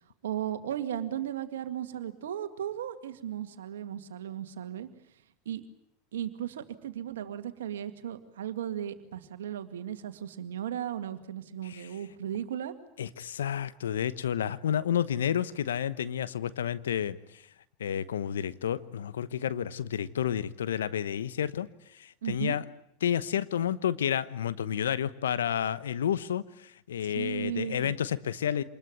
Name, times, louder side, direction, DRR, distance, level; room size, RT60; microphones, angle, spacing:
voice 1, 0.2-4.9 5.5-5.6 6.1-12.7 22.2-22.6 27.0-27.9, right 10 dB, 80° right, 9 dB, 2.1 m, -36 dB
voice 2, 13.0-17.2 17.8-21.7 22.0-22.6 23.0-28.6, left 9 dB, 85° left, 16 dB, 1.0 m, -30 dB
27.0 x 21.0 x 9.3 m, 0.73 s
hypercardioid pair, 95°, 0 cm